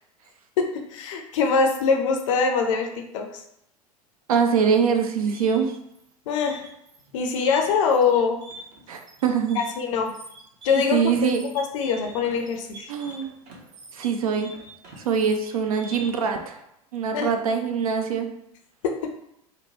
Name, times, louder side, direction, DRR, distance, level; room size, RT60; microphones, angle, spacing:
voice 1, 0.9-2.9 3.1-3.4 6.3-6.6 7.1-8.4 9.5-10.1 10.6-11.3 11.5-12.9 17.1-17.3, left 5 dB, 55° left, 4 dB, 0.5 m, -23 dB
voice 2, 4.3-5.7 8.9-9.6 10.9-11.4 12.9-13.4 13.9-14.5 15.0-16.6 16.9-18.3, right 6 dB, 70° right, 5 dB, 0.4 m, -23 dB
sound 1, 5.2-16.3, right 1 dB, 40° right, 0.7 m, -44 dB
2.9 x 2.1 x 2.8 m, 0.80 s
figure-of-eight pair, 80°, 19 cm